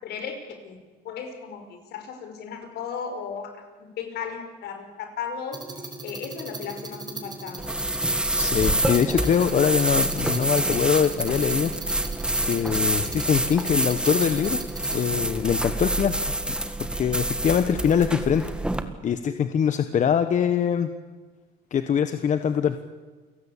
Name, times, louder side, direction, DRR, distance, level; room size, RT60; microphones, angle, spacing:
voice 1, 0.0-0.8 1.0-5.6 6.0-7.8, left 6 dB, 75° left, 6 dB, 5.4 m, -35 dB
sound 1, 5.5-15.0, right 3 dB, 25° right, 4.9 m, -38 dB
sound 2, 7.6-18.8, right 1 dB, 5° right, 1.8 m, -27 dB
voice 2, 8.4-11.7 12.5-14.6 14.9-16.1 16.5-16.6 17.0-18.4 19.0-20.9 21.7-22.8, left 8 dB, 45° left, 9 dB, 1.4 m, -23 dB
29.0 x 17.5 x 8.6 m, 1.3 s
cardioid pair, 110°, 17 cm